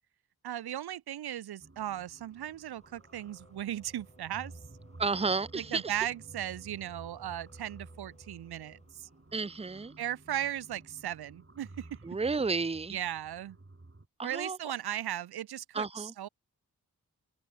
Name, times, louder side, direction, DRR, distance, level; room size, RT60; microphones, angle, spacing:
voice 1, 0.4-4.5 5.5-9.1 10.0-11.9 12.9-13.6 14.2-16.3, right 11 dB, 85° right, 0.5 m, -37 dB
sound 1, 1.6-14.1, right 2 dB, 35° right, 6.4 m, -53 dB
Race car auto racing / Accelerating revving vroom, 2.2-9.5, left 1 dB, 20° left, 6.0 m, -64 dB
voice 2, 5.0-5.8 9.3-9.9 12.0-13.0 14.2-14.6 15.7-16.1, right 4 dB, 15° right, 0.6 m, -31 dB
open air
cardioid pair, 45°, 37 cm